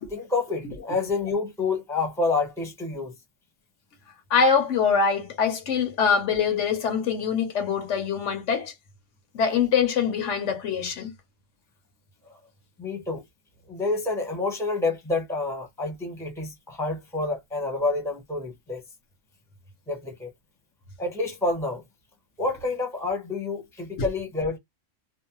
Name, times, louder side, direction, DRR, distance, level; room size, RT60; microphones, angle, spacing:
voice 1, 0.1-3.1 12.3-12.4 12.8-13.2 13.7-18.8 19.9-20.3 21.0-21.8 22.4-24.6, left 3 dB, 5° left, 0.8 m, -28 dB
voice 2, 4.3-8.7 9.3-11.1 24.0-24.1, left 6 dB, 75° left, 1.0 m, -24 dB
2.6 x 2.0 x 2.9 m
omnidirectional pair, 1.3 m